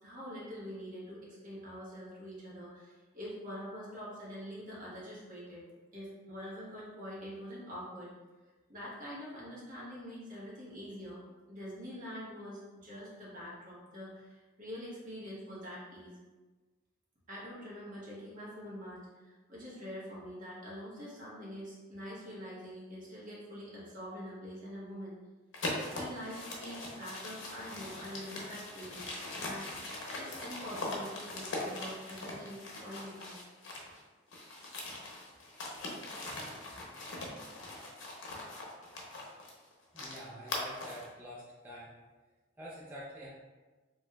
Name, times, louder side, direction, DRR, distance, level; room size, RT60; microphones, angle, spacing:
voice 1, 0.0-5.6 5.9-8.1 8.7-11.2 11.5-16.2 17.3-25.2 25.9-29.1 29.4-29.9 30.2-33.4, equal, 45° right, -7 dB, 1.3 m, -45 dB
sound 1, 25.5-34.0 34.3-41.1, left 2 dB, 90° left, 0.8 m, -41 dB
voice 2, 39.9-41.9 42.6-43.3, equal, 10° right, -8 dB, 0.5 m, -47 dB
4.8 x 2.9 x 2.3 m, 1.3 s
head